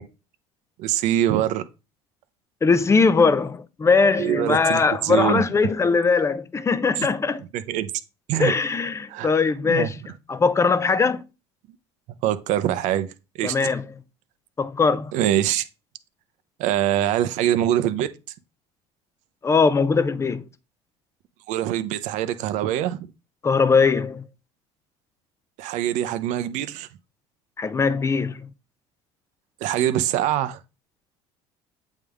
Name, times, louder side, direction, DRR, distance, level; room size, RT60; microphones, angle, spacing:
voice 1, 0.8-1.6 4.2-5.4 7.0-7.1 7.5-7.9 8.3-8.5 9.1-9.3 9.6-9.9 12.2-13.7 15.1-15.7 16.6-18.1 21.5-23.0 25.6-26.9 29.6-30.6, right 12 dB, 70° right, 0.6 m, -24 dB
voice 2, 2.6-7.4 8.4-9.9 10.3-11.2 13.4-13.8 14.6-15.1 19.4-20.4 23.4-24.2 27.6-28.5, left 4 dB, 20° left, 0.6 m, -20 dB
8.2 x 3.6 x 3.5 m
supercardioid pair, 90°, 13 cm